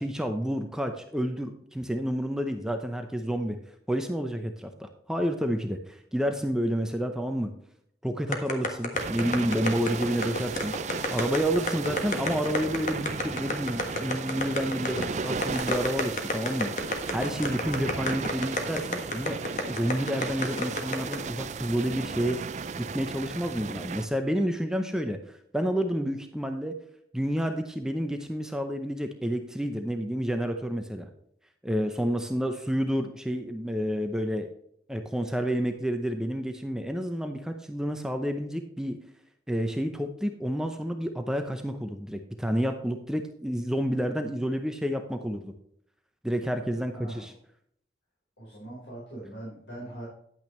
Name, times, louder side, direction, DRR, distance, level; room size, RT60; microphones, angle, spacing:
voice 1, 0.0-3.6 3.9-7.5 8.0-10.7 11.1-19.4 19.7-22.4 22.9-26.8 27.1-31.1 31.6-34.5 34.9-39.0 39.5-45.5 46.2-47.3, equal, 5° right, 5 dB, 0.7 m, -29 dB
sound 1, 8.3-21.2, left 2 dB, 45° left, 1.4 m, -30 dB
sound 2, 8.9-24.1, right 4 dB, 40° right, 0.4 m, -35 dB
voice 2, 48.4-50.0, right 1 dB, 90° left, -7 dB, 4.4 m, -41 dB
10.5 x 8.8 x 3.2 m, 0.70 s
head